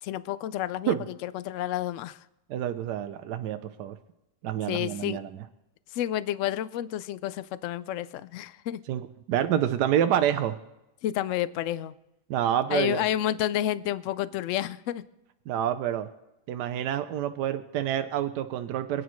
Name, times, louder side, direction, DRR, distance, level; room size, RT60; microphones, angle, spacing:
voice 1, 0.0-1.0 1.2-2.2 4.7-5.2 5.9-8.8 11.0-11.9 12.7-15.0, left 12 dB, 70° left, 16 dB, 0.8 m, -30 dB
voice 2, 2.5-4.0 4.4-5.3 8.9-9.0 9.3-10.6 12.3-13.0 15.5-16.1 16.5-19.0, right 10 dB, 90° right, 9 dB, 1.2 m, -27 dB
26.0 x 9.5 x 3.1 m, 0.93 s
omnidirectional pair, 1.7 m